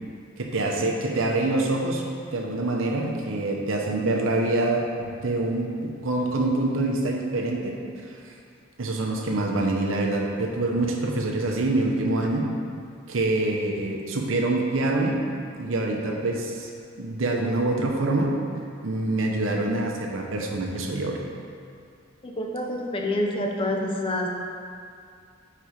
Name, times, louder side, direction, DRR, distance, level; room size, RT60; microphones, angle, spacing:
voice 1, 0.4-2.0 2.3-7.8 8.8-12.5 13.1-15.2 15.5-16.7 17.0-18.3 18.8-21.1, right 2 dB, 75° right, 0 dB, 0.8 m, -25 dB
voice 2, 22.2-24.3, left 1 dB, 25° left, 1 dB, 0.5 m, -27 dB
5.0 x 4.4 x 5.0 m, 2.3 s
head